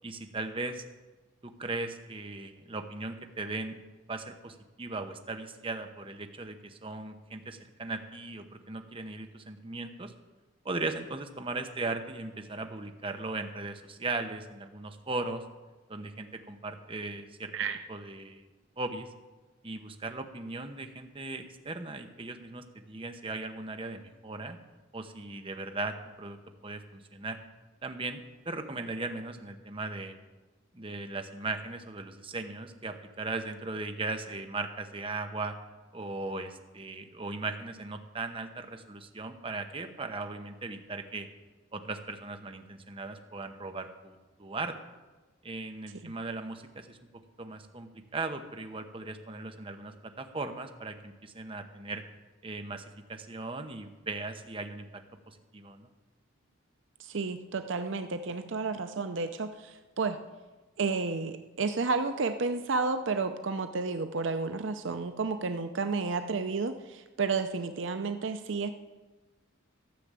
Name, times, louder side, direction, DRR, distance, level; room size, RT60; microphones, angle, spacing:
voice 1, 0.0-0.8 1.4-3.8 4.1-10.1 10.6-15.4 15.9-17.5 17.9-18.5 18.8-19.1 19.6-24.6 24.9-26.4 26.6-27.4 27.8-30.2 30.7-35.6 35.9-41.3 41.7-44.8 45.4-47.0 47.4-52.0 52.4-55.0 55.3-55.9, right 3 dB, 25° right, 6 dB, 0.9 m, -38 dB
voice 2, 57.0-60.2 60.8-68.7, right 4 dB, 60° right, 9 dB, 0.6 m, -31 dB
13.5 x 6.8 x 7.6 m, 1.2 s
head